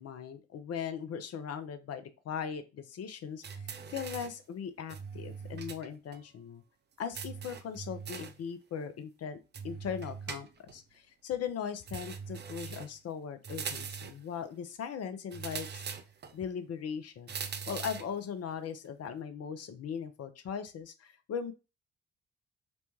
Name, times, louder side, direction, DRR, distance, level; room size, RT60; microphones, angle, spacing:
voice 1, 0.0-6.6 7.0-9.4 9.6-15.8 16.3-17.3 17.7-21.5, left 7 dB, 45° left, 10 dB, 0.6 m, -39 dB
sound 1, 3.4-4.4 4.9-5.9 6.1-6.2 7.1-8.4 9.5-10.8 11.9-13.0 13.4-14.2 15.3-16.3 17.3-18.2, right 6 dB, 30° right, 0.5 m, -41 dB
4.1 x 2.2 x 3.0 m, 0.30 s
figure-of-eight pair, 40°, 35 cm